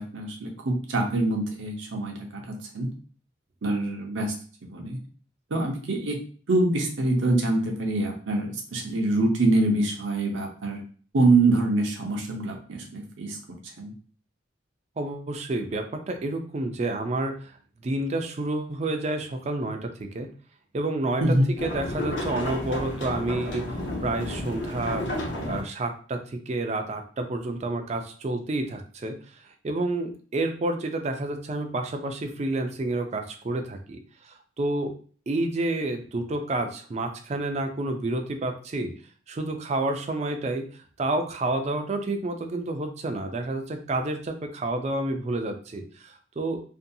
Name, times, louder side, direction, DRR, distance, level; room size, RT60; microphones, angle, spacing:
voice 1, 0.0-2.9 3.6-4.3 4.7-5.0 5.5-6.2 6.5-10.8 11.1-13.9 21.2-21.5, right 2 dB, 75° right, 2 dB, 0.6 m, -25 dB
voice 2, 15.0-17.6 17.8-20.3 20.7-21.4 21.6-29.2 29.4-34.9 35.3-38.9 39.3-46.6, right 2 dB, 35° right, 6 dB, 0.3 m, -29 dB
sound 1, 21.6-25.6, left 1 dB, 70° left, 0.8 m, -31 dB
2.6 x 2.2 x 2.6 m, 0.43 s
head